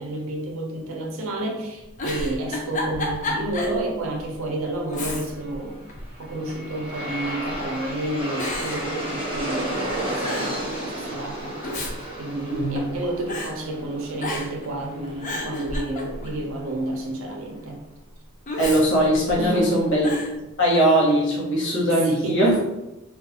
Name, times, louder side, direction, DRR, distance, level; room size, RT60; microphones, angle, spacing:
voice 1, 0.0-5.8 6.2-11.6 12.2-17.8 19.4-19.9 22.0-22.5, right 1 dB, 65° right, 1 dB, 0.5 m, -30 dB
Giggle, 1.8-3.8 4.2-4.3 4.9-5.6 5.9-6.7 7.5-7.9 8.4-9.6 9.9-10.0 10.2-10.6 11.4-13.0 13.3-13.5 14.2-14.7 15.0-16.4 18.5-19.6 20.0-20.3, left 1 dB, 35° left, 0.4 m, -31 dB
Aircraft, 5.8-16.9, right 1 dB, 25° right, 0.7 m, -33 dB
voice 2, 12.5-12.9 18.6-20.1 20.6-22.6, right 1 dB, 60° left, -4 dB, 0.9 m, -20 dB
2.3 x 2.3 x 2.8 m, 0.98 s
head